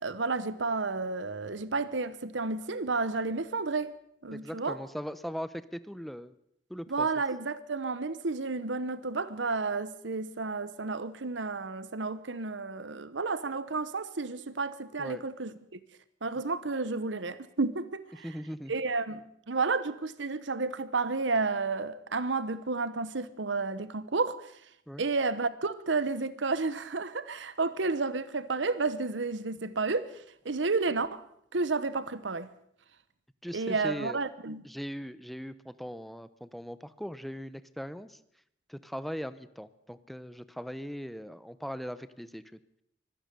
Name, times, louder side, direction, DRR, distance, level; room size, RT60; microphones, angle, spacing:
voice 1, 0.0-3.9 4.2-4.8 6.9-15.8 16.2-18.3 18.7-24.5 25.0-31.2 31.5-32.5 33.5-34.6, right 3 dB, 85° right, 15 dB, 1.1 m, -31 dB
voice 2, 4.3-6.3 6.7-7.1 15.0-15.2 18.2-18.7 24.9-25.0 33.4-34.2 34.6-38.2 38.7-42.4, equal, ahead, 14 dB, 0.8 m, -39 dB
24.0 x 17.0 x 6.9 m, 0.70 s
head